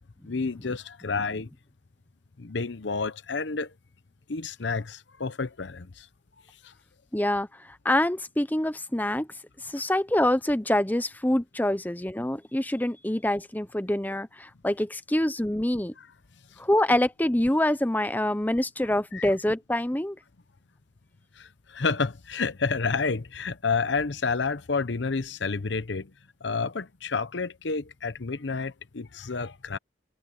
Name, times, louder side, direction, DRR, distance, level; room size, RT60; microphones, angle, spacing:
voice 1, 0.3-1.5 2.4-3.7 4.3-6.1 19.1-19.3 21.4-26.1 26.4-29.8, left 4 dB, 70° left, 0.8 m, -30 dB
voice 2, 7.1-9.3 9.6-15.9 16.6-20.2, left 1 dB, 10° left, 0.7 m, -26 dB
head